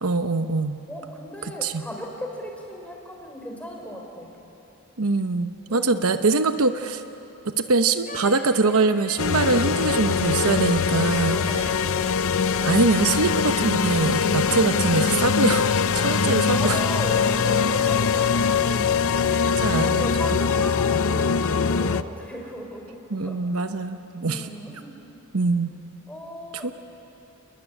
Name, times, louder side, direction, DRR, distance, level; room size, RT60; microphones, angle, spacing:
voice 1, 0.0-0.8 1.6-1.8 5.0-7.0 7.4-11.4 12.6-15.7 15.9-16.8 19.5-20.0 23.1-24.5 25.3-25.7 26.6-26.7, right 3 dB, 70° right, 8 dB, 0.9 m, -23 dB
voice 2, 0.9-4.4 5.7-6.1 11.2-12.3 14.5-14.6 16.5-19.0 19.8-23.4 24.2-25.0 26.1-26.7, equal, 5° left, 0 dB, 4.8 m, -36 dB
sound 1, 8.0-20.3, left 4 dB, 40° left, 3.0 m, -41 dB
sound 2, 9.2-22.0, left 6 dB, 65° left, 0.6 m, -22 dB
28.0 x 21.0 x 9.8 m, 2.9 s
head